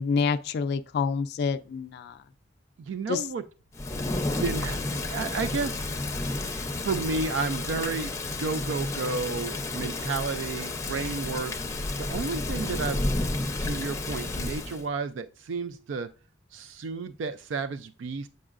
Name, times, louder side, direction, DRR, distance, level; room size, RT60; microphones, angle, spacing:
voice 1, 0.0-2.2 3.1-3.2, left 5 dB, 55° left, 0.3 m, -27 dB
voice 2, 2.8-3.4 4.4-5.9 6.8-11.5 12.0-13.3 13.6-16.1 16.5-18.3, right 4 dB, 70° right, 0.3 m, -32 dB
Thunder / Rain, 3.7-14.8, left 2 dB, 15° left, 0.6 m, -31 dB
7.8 x 5.4 x 2.4 m
head